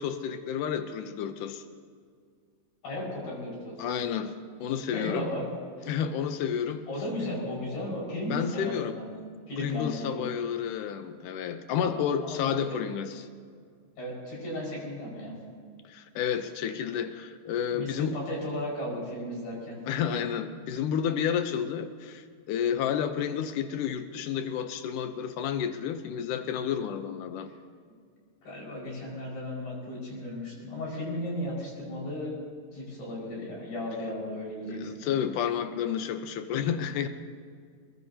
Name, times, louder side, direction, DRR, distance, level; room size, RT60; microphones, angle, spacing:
voice 1, 0.0-1.6 3.8-4.3 4.6-5.3 5.9-6.8 8.3-9.0 9.6-13.3 15.9-18.2 19.9-27.5 34.7-37.1, left 8 dB, 80° left, 8 dB, 1.9 m, -30 dB
voice 2, 2.8-3.8 4.9-5.5 5.8-5.9 6.9-9.1 9.5-10.3 11.8-12.8 14.0-15.3 17.7-19.8 28.4-32.4 32.7-34.9, left 1 dB, 60° left, -3 dB, 7.1 m, -35 dB
22.5 x 21.5 x 2.8 m, 2.1 s
omnidirectional pair, 4.7 m